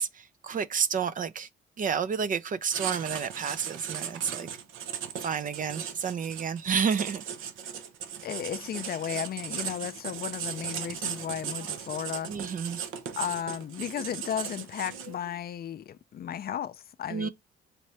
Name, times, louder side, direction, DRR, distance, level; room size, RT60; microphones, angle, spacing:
voice 1, 0.0-1.5 1.8-4.5 5.2-7.2 12.3-12.9 17.1-17.3, right 6 dB, 45° right, 0.5 m, -30 dB
Writing, 2.7-15.3, right 8 dB, 85° right, 0.8 m, -37 dB
voice 2, 8.2-12.3 13.2-17.3, left 9 dB, 50° left, 0.5 m, -34 dB
4.2 x 2.6 x 3.3 m
cardioid pair, 90°, 20 cm